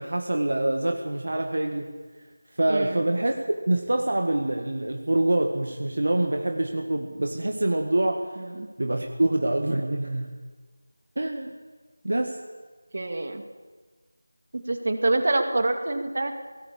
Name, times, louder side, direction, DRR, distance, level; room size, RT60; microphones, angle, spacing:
voice 1, 0.0-1.9 2.6-3.3 3.7-8.4 8.8-10.4 11.2-11.5 12.0-12.4, right 1 dB, 65° right, 3 dB, 1.8 m, -25 dB
voice 2, 2.7-3.0 8.4-8.7 12.9-13.4 14.5-16.3, right 2 dB, 50° right, 6 dB, 2.4 m, -26 dB
18.5 x 16.5 x 8.7 m, 1.4 s
figure-of-eight pair, 170°, 0 cm